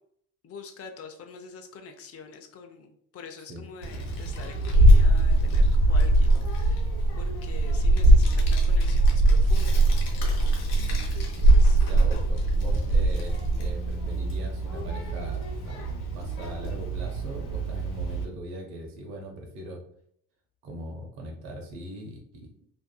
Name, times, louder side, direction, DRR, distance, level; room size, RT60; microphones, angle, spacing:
voice 1, 0.4-6.9 7.2-9.8 11.5-11.8 12.1-12.4, left 5 dB, 30° left, 5 dB, 0.5 m, -45 dB
Child speech kid speaking, 3.8-18.2, right 1 dB, 90° left, 0.6 m, -22 dB
voice 2, 11.7-19.8 20.6-22.5, equal, 85° right, 2 dB, 0.8 m, -40 dB
2.6 x 2.3 x 2.2 m, 0.67 s
hypercardioid pair, 55°, 46 cm